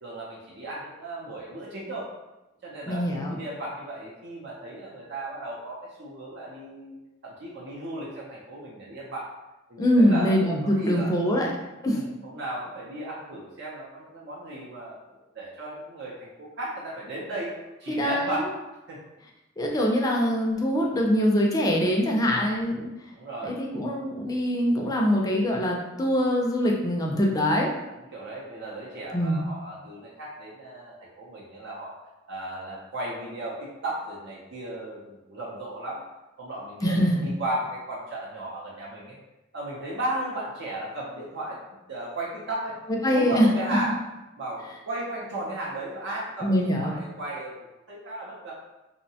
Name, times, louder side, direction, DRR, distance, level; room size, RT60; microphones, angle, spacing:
voice 1, 0.0-2.1 2.6-7.0 7.2-9.3 9.7-11.5 11.8-18.5 18.9-19.0 23.1-23.6 28.0-31.9 32.3-36.0 36.4-39.2 39.5-41.6 41.9-42.8 43.1-44.0 44.4-48.5, right 1 dB, 65° right, -5 dB, 0.5 m, -35 dB
voice 2, 2.9-3.4 9.8-11.5 11.8-12.0 17.9-18.4 19.6-22.9 23.4-27.7 29.1-29.5 36.8-37.3 43.0-43.5 46.4-46.9, equal, 20° left, -1 dB, 0.4 m, -23 dB
2.7 x 2.1 x 2.7 m, 0.98 s
head